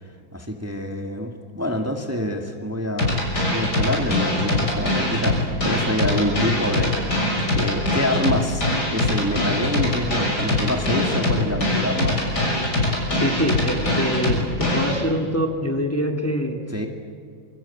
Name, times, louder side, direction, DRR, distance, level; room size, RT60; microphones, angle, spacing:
voice 1, 0.3-8.6 8.9-12.2 16.7-16.9, equal, 10° right, 3 dB, 2.0 m, -26 dB
sound 1, 3.0-15.0, left 1 dB, 60° left, 6.9 m, -22 dB
voice 2, 13.1-16.6, equal, 10° left, 3 dB, 1.9 m, -25 dB
27.0 x 25.0 x 8.6 m, 2.2 s
omnidirectional pair, 2.0 m